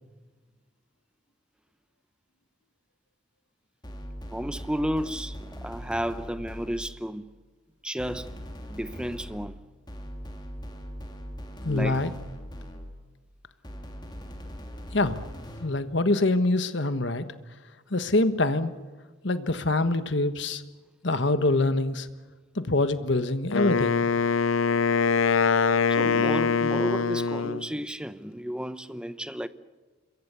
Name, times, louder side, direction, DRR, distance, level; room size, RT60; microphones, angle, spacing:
sound 1, 3.8-7.1 8.0-13.1 13.6-15.9, equal, 20° left, 2.9 m, -41 dB
voice 1, 4.3-7.4 7.8-8.4 8.6-9.6 11.6-12.1 25.9-29.5, equal, 5° right, 0.8 m, -32 dB
voice 2, 11.6-12.1 14.9-15.2 15.6-17.3 17.9-18.7 19.2-20.6 21.0-22.1 22.5-24.0, left 2 dB, 60° left, 1.4 m, -25 dB
Wind instrument woodwind instrument, 23.5-27.7, left 5 dB, 80° left, 0.7 m, -23 dB
27.0 x 22.5 x 6.9 m
head